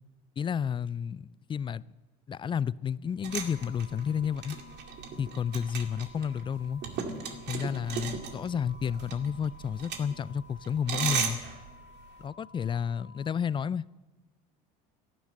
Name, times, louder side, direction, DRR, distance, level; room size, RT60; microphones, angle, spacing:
voice 1, 0.4-1.8 2.3-4.6 5.2-6.8 7.5-11.4 12.2-14.0, left 7 dB, 25° left, 0.4 m, -31 dB
sound 1, 3.2-12.2, right 7 dB, 55° right, 2.2 m, -37 dB
sound 2, 3.3-13.3, left 4 dB, 75° left, 1.6 m, -55 dB
12.0 x 11.5 x 8.8 m
supercardioid pair, 95°, 21 cm